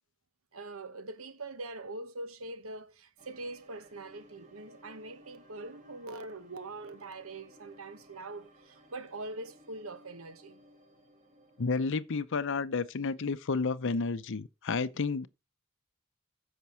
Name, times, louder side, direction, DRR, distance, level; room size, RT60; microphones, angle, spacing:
voice 1, 0.5-10.6, right 2 dB, 75° right, 1.3 m, -43 dB
sound 1, 3.2-12.0, equal, 35° right, 3.2 m, -59 dB
voice 2, 11.6-15.3, left 4 dB, 60° left, 0.6 m, -31 dB
14.0 x 5.9 x 4.4 m
head